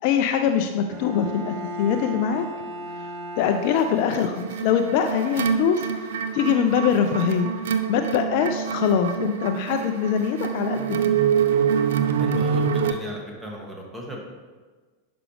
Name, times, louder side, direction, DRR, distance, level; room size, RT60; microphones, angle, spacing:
voice 1, 0.0-2.4 3.4-5.8 6.3-7.5 7.9-11.1, left 8 dB, 45° left, 7 dB, 0.5 m, -23 dB
Bowed string instrument, 0.9-4.6, equal, 35° right, 1.4 m, -36 dB
sound 1, 3.7-12.9, right 7 dB, 60° right, 0.5 m, -25 dB
voice 2, 12.2-14.2, right 1 dB, 10° right, -1 dB, 1.8 m, -36 dB
10.5 x 6.1 x 3.4 m, 1.4 s
figure-of-eight pair, 90°, 0 cm